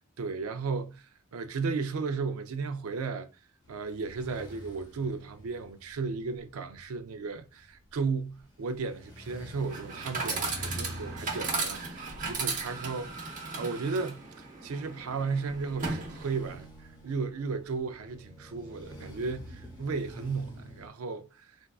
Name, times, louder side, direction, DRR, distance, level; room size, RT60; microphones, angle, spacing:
voice 1, 0.2-1.0 1.3-3.3 3.7-21.5, right 4 dB, 75° right, 0.4 m, -34 dB
sound 1, 3.6-20.9, equal, 20° left, 0.9 m, -48 dB
Chatter / Coin (dropping), 9.6-16.6, right 4 dB, 40° right, 0.8 m, -36 dB
3.5 x 2.5 x 2.3 m
head